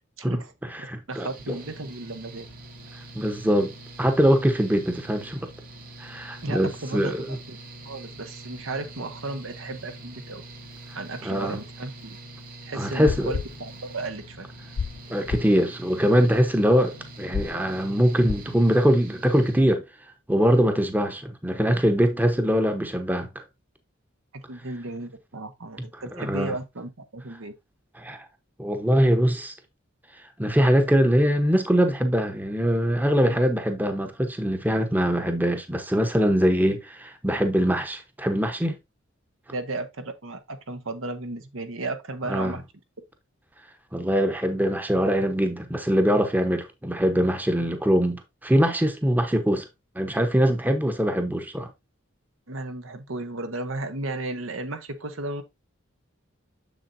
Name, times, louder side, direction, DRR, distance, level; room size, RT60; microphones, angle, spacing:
voice 1, 0.2-0.5 0.8-2.4 6.4-7.1 7.5-7.6 7.8-10.4 10.9-12.2 12.6-14.5 24.5-27.5 33.2-33.4 39.5-42.6 52.5-55.4, right 2 dB, 70° right, 1.1 m, -34 dB
voice 2, 0.9-1.3 3.1-5.4 6.0-7.3 11.2-11.6 12.8-13.3 15.1-19.8 20.3-23.3 26.1-26.5 28.0-28.2 28.6-29.5 30.4-38.7 42.3-42.5 43.9-49.7 50.0-51.7, equal, 10° right, 0.9 m, -22 dB
Mechanical fan, 1.1-19.6, right 2 dB, 45° right, 1.2 m, -44 dB
sound 1, 12.8-14.3 14.5-15.0 15.3-15.5 17.3-17.5 18.2-18.5, left 6 dB, 50° left, 0.3 m, -32 dB
7.1 x 6.8 x 2.6 m
head